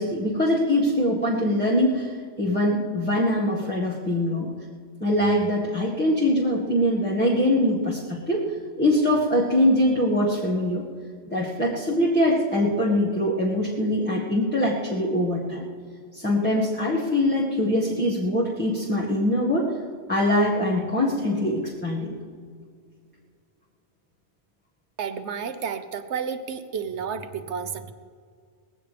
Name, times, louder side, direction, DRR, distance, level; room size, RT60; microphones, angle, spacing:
voice 1, 0.0-4.5 5.0-8.4 8.8-10.8 11.3-15.6 16.1-19.7 20.1-22.1, left 1 dB, 10° left, -5 dB, 1.6 m, -23 dB
voice 2, 25.0-27.9, right 6 dB, 70° right, 9 dB, 1.1 m, -31 dB
20.0 x 16.0 x 3.4 m, 2.1 s
omnidirectional pair, 1.2 m